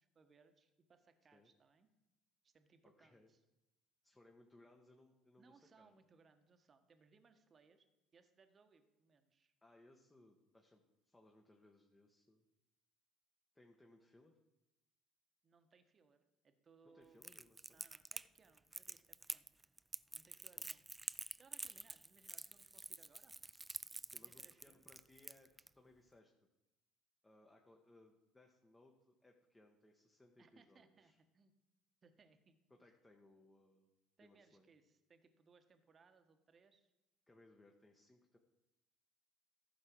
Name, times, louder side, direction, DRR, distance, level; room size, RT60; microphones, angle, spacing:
voice 1, 0.0-1.9 2.4-3.4 5.4-7.9 8.1-9.5 15.4-17.2 17.7-19.5 20.1-20.8 21.2-23.3 24.1-24.8 30.4-31.5 32.0-32.9 34.2-36.9, right 5 dB, 35° right, 8 dB, 1.2 m, -69 dB
voice 2, 2.8-3.3 4.0-5.9 9.6-12.4 13.5-14.4 16.8-17.8 20.6-20.7 24.1-26.3 27.2-31.2 32.7-33.9 34.2-34.7 37.3-38.4, left 2 dB, 15° left, 2 dB, 1.3 m, -66 dB
Crackle, 17.2-25.7, right 2 dB, 15° right, 0.3 m, -48 dB
14.5 x 6.1 x 4.6 m, 0.96 s
hypercardioid pair, 60°, 0 cm